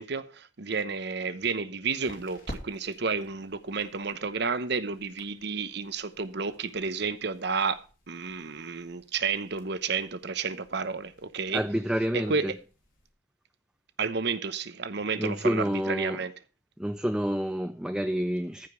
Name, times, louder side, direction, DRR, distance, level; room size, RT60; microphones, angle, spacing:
voice 1, 0.0-11.6 12.1-12.5 14.0-16.3, right 5 dB, 55° right, 0.9 m, -31 dB
sound 1, 0.7-13.1, equal, 45° left, 2.8 m, -51 dB
voice 2, 11.5-12.5 15.2-16.2 16.8-18.7, equal, 5° right, 0.4 m, -28 dB
14.5 x 5.2 x 6.1 m
head